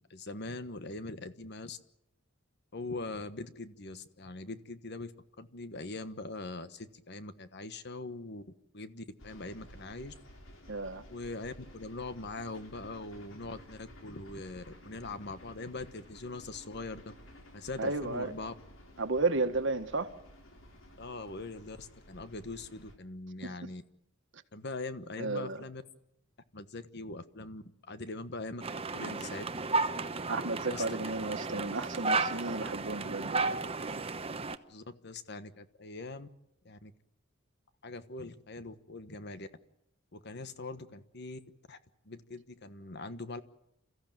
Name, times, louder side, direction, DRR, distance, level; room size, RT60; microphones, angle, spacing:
voice 1, 0.1-1.8 2.7-5.1 5.4-8.4 8.7-10.1 11.1-17.0 17.5-18.5 21.0-23.8 24.5-25.8 26.5-28.6 28.9-29.5 30.7-30.8 34.7-36.3 36.6-36.9 37.8-39.5 40.1-41.4 41.7-41.8 42.1-43.4, left 2 dB, 55° left, 1.3 m, -42 dB
sound 1, 9.2-22.9, equal, 75° left, 4.0 m, -54 dB
voice 2, 10.7-11.0 17.8-18.3 19.0-20.1 23.4-23.5 25.2-25.6 30.3-33.6, right 3 dB, 65° right, 1.5 m, -33 dB
sound 2, 28.6-34.6, right 3 dB, 30° right, 0.9 m, -33 dB
28.5 x 14.5 x 9.1 m
head